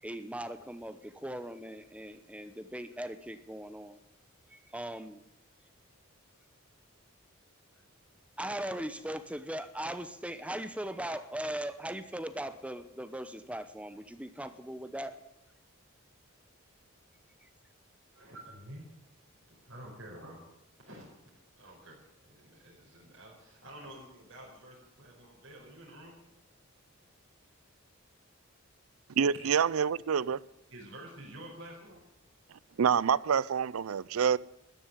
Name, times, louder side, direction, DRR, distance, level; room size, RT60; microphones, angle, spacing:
voice 1, 0.0-4.0 4.5-5.2 8.4-15.2 17.4-17.5, right 1 dB, 5° right, 0.8 m, -39 dB
voice 2, 18.1-18.9 19.2-20.4 20.8-21.0 21.6-22.0 22.2-26.2 29.3-29.5 30.7-32.1, right 1 dB, 60° right, 4.8 m, -49 dB
voice 3, 29.2-30.4 32.8-34.4, right 7 dB, 85° right, 0.5 m, -27 dB
13.5 x 10.0 x 9.9 m
head